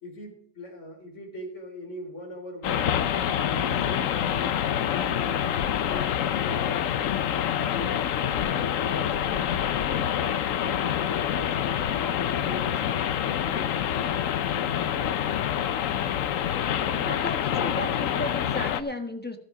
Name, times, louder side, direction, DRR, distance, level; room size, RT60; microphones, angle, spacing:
voice 1, 0.0-2.9 3.3-6.1 6.4-9.5 9.8-11.8 12.1-15.2, left 1 dB, 35° left, 2 dB, 3.6 m, -41 dB
sound 1, 2.6-18.8, left 9 dB, 65° left, 0.8 m, -26 dB
voice 2, 16.9-19.4, left 1 dB, 5° left, 5 dB, 0.9 m, -34 dB
13.0 x 11.0 x 4.8 m, 0.64 s
omnidirectional pair, 2.1 m